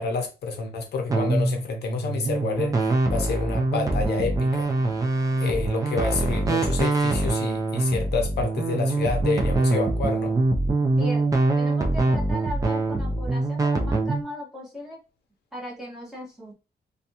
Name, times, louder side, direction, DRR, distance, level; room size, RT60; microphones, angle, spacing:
voice 1, 0.0-4.7 5.4-10.3, left 4 dB, 75° left, 0.6 m, -28 dB
sound 1, 1.1-14.2, right 2 dB, 20° right, 0.4 m, -24 dB
voice 2, 11.0-15.0 15.5-16.5, equal, 5° right, 1.0 m, -37 dB
2.5 x 2.2 x 2.7 m
wide cardioid pair, 170°, 17 cm